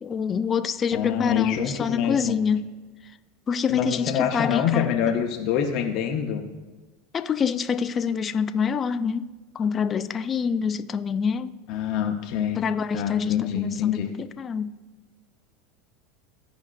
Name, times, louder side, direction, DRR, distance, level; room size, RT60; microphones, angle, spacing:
voice 1, 0.0-2.7 3.5-4.9 7.1-11.6 12.6-14.7, left 6 dB, 30° left, 0.3 m, -26 dB
voice 2, 0.9-2.3 3.7-6.4 11.7-12.6 12.9-14.1, left 9 dB, 55° left, 0.8 m, -25 dB
14.5 x 5.1 x 2.5 m
supercardioid pair, 110°, 0 cm